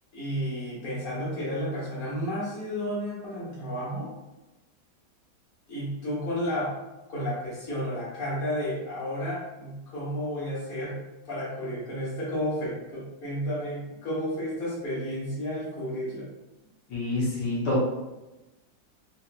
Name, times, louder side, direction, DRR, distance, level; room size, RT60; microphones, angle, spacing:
voice 1, 0.1-4.1 5.7-6.7 7.1-11.0 11.2-16.3, equal, 30° left, -8 dB, 1.3 m, -32 dB
voice 2, 16.9-17.8, left 1 dB, 75° left, -7 dB, 1.5 m, -26 dB
3.9 x 2.7 x 2.2 m, 1.0 s
omnidirectional pair, 2.1 m